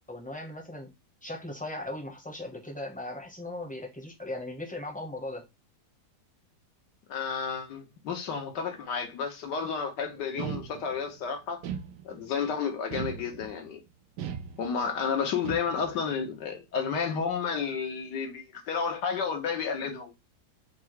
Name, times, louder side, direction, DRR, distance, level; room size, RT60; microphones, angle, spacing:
voice 1, 0.1-0.9 1.2-5.5, left 1 dB, 5° left, 0.6 m, -38 dB
voice 2, 7.1-11.6 12.0-13.8 14.6-20.1, left 6 dB, 75° left, 1.6 m, -31 dB
sound 1, 10.4-11.1 11.6-12.4 12.9-13.7 14.2-15.0 15.4-16.0, right 8 dB, 80° right, 1.2 m, -38 dB
4.5 x 2.1 x 4.7 m
omnidirectional pair, 1.9 m